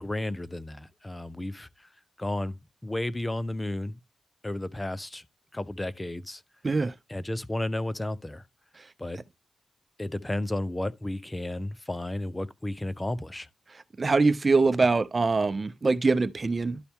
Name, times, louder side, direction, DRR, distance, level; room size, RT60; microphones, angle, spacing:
voice 1, 0.0-1.9 2.2-4.0 4.4-5.2 5.5-6.4 7.1-8.4 9.0-9.2 10.0-13.5, left 1 dB, 25° left, 0.9 m, -33 dB
voice 2, 6.6-6.9 8.8-8.9 13.7-16.8, right 3 dB, 45° right, 0.7 m, -24 dB
12.0 x 4.2 x 3.6 m
supercardioid pair, 40°, 0 cm